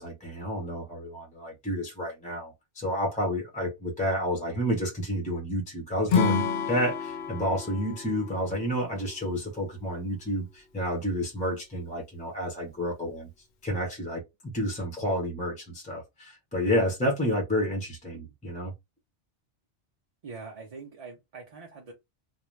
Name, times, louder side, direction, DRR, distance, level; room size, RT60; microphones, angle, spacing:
voice 1, 0.0-13.3 13.6-18.7, equal, 10° left, 0.5 m, -30 dB
Acoustic guitar / Strum, 6.1-9.4, left 6 dB, 60° left, 0.7 m, -29 dB
voice 2, 20.2-21.9, right 4 dB, 45° right, 0.5 m, -43 dB
2.4 x 2.1 x 3.1 m
omnidirectional pair, 1.2 m